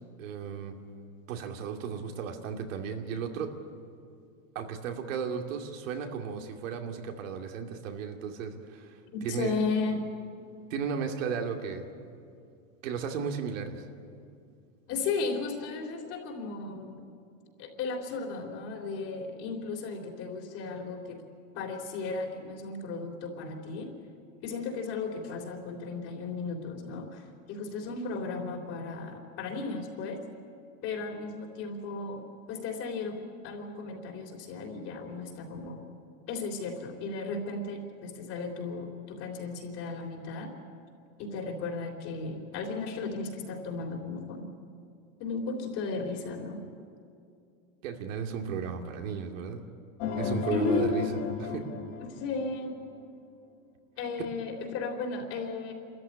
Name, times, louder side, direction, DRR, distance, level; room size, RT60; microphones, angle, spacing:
voice 1, 0.2-0.7 1.3-3.5 4.5-9.5 10.7-11.9 12.8-13.8 47.8-49.6 50.2-51.0 51.4-51.6, right 6 dB, 75° right, 3 dB, 2.6 m, -35 dB
voice 2, 9.1-10.0 14.9-17.1 17.6-21.2 21.5-23.9 24.4-30.2 30.8-33.2 33.4-35.8 36.3-40.5 41.2-44.5 45.2-46.6 50.5-51.0 52.1-52.8 54.0-55.7, left 4 dB, 40° left, 2 dB, 3.6 m, -35 dB
sound 1, 50.0-52.8, left 6 dB, 55° left, 2.7 m, -34 dB
27.0 x 14.0 x 9.9 m, 2.4 s
supercardioid pair, 155°, 39 cm